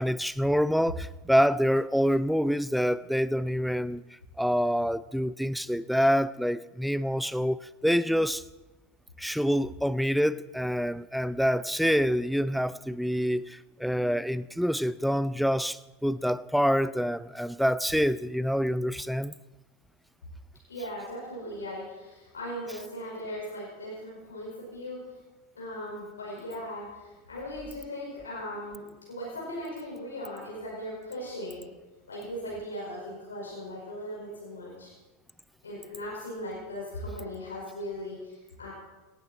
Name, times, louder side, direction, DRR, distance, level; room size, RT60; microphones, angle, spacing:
voice 1, 0.0-4.0 4.4-8.4 9.2-19.3, equal, ahead, 0.5 m, -26 dB
voice 2, 20.7-25.0 25.6-31.6 32.1-34.9 35.6-38.7, equal, 80° left, 5.2 m, -38 dB
17.5 x 13.5 x 4.3 m
figure-of-eight pair, 85°, 0 cm